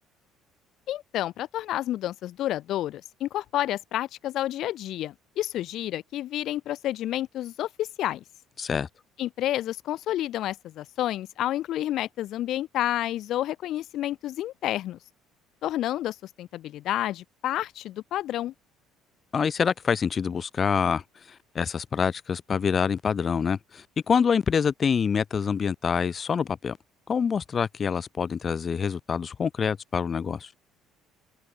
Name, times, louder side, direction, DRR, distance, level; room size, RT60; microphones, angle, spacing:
voice 1, 0.9-8.2 9.2-15.0 15.6-18.5, left 13 dB, 65° left, 2.6 m, -30 dB
voice 2, 19.3-21.0 21.6-26.8 27.1-30.5, left 6 dB, 35° left, 1.9 m, -26 dB
open air
cardioid pair, 105°, 0 cm